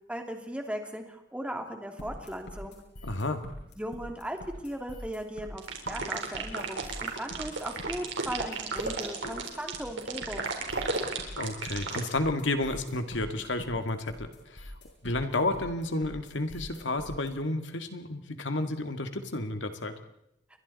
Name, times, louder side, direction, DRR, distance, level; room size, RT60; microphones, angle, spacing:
voice 1, 0.1-2.8 3.8-4.4 4.6-10.5, equal, 5° right, 4 dB, 2.6 m, -37 dB
sound 1, 2.0-17.3, left 1 dB, 65° left, 7.9 m, -45 dB
voice 2, 3.0-3.4 11.4-14.7 15.0-19.9, left 2 dB, 85° left, 7 dB, 2.1 m, -31 dB
sound 2, 5.6-12.1, right 4 dB, 90° right, 4.1 m, -33 dB
29.5 x 23.0 x 4.2 m, 0.81 s
head